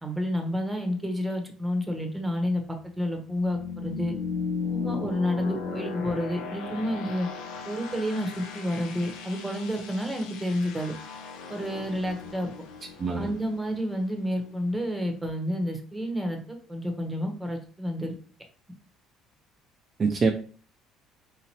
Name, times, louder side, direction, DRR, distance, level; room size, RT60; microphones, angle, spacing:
voice 1, 0.0-4.1 4.7-7.3 7.6-10.9 11.5-12.5 13.2-16.4 16.7-18.2, equal, 5° right, 2 dB, 0.9 m, -30 dB
sound 1, 2.2-14.8, left 5 dB, 80° left, 0.7 m, -37 dB
voice 2, 13.0-13.3 20.0-20.3, right 4 dB, 35° right, 4 dB, 0.4 m, -25 dB
3.9 x 2.9 x 2.9 m, 0.42 s
cardioid pair, 100°, 0 cm